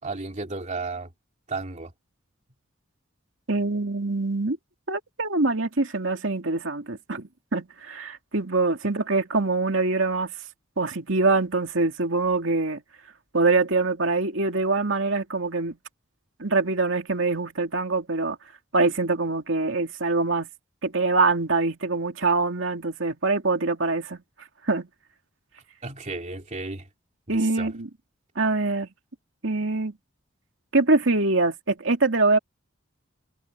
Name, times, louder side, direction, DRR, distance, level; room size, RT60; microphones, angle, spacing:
voice 1, 0.0-1.1 1.5-1.9 25.8-26.9 27.3-27.7, right 3 dB, 40° right, 2.9 m, -33 dB
voice 2, 3.5-4.6 4.9-10.3 10.8-12.8 13.3-15.8 16.4-18.4 18.7-20.5 20.8-24.2 24.7-24.9 27.3-27.9 28.4-28.9 29.4-29.9 30.7-32.4, right 3 dB, 75° right, 2.6 m, -24 dB
head